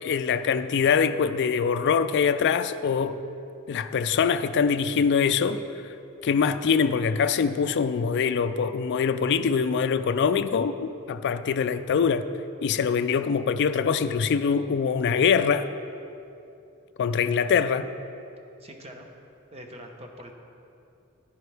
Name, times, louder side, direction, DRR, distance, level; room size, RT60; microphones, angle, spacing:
voice 1, 0.0-3.2 3.7-5.6 6.2-12.3 12.6-15.7 17.0-17.9, left 6 dB, 55° left, 0.3 m, -23 dB
voice 2, 18.6-19.1 19.5-20.3, equal, 30° right, 0.9 m, -43 dB
10.5 x 9.9 x 3.4 m
head